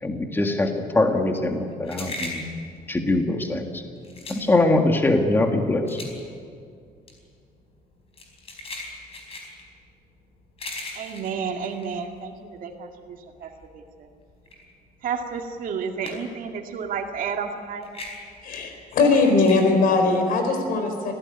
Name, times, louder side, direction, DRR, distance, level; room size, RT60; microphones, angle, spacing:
voice 1, 0.0-2.4 2.9-3.8 4.3-6.0, left 2 dB, 15° left, 4 dB, 1.8 m, -22 dB
sound 1, 1.1-12.7 13.1-16.5 16.8-19.6, left 2 dB, 40° left, 4.6 m, -39 dB
voice 2, 11.0-13.8 15.0-17.9, right 6 dB, 60° right, 3 dB, 2.3 m, -31 dB
voice 3, 18.4-21.1, left 3 dB, 65° left, 5 dB, 4.2 m, -20 dB
26.5 x 16.5 x 9.8 m, 2.3 s
cardioid pair, 170°, 16 cm